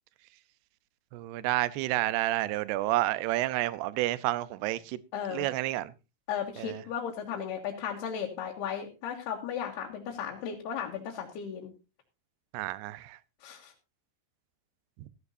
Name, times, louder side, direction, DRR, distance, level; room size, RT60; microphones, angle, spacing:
voice 1, 1.1-5.0 5.3-5.9 6.6-6.8 12.5-13.2, right 16 dB, 80° right, 2.7 m, -30 dB
voice 2, 5.1-5.5 6.3-11.7 13.4-13.7, left 8 dB, 75° left, 3.6 m, -35 dB
15.5 x 14.5 x 2.7 m
omnidirectional pair, 4.9 m